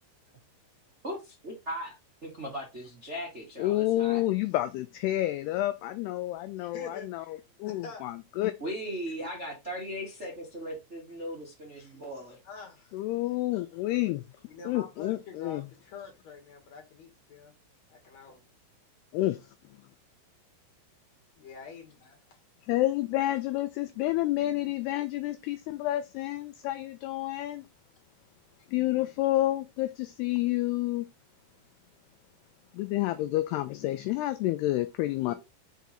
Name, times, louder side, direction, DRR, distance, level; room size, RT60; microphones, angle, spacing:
voice 1, 1.0-1.9 2.2-4.2 8.6-12.4, equal, 80° right, 0.6 m, -38 dB
voice 2, 3.6-8.5 12.9-14.2 14.7-15.7 19.1-19.4 22.7-27.7 28.7-31.1 32.7-35.3, left 16 dB, 85° left, 2.3 m, -29 dB
voice 3, 6.6-7.1 7.6-8.0 11.8-11.9 12.4-13.0 14.5-17.5 17.9-18.4 21.4-22.4 35.1-35.3, left 4 dB, 50° left, 2.4 m, -46 dB
6.1 x 4.6 x 4.1 m
omnidirectional pair, 5.3 m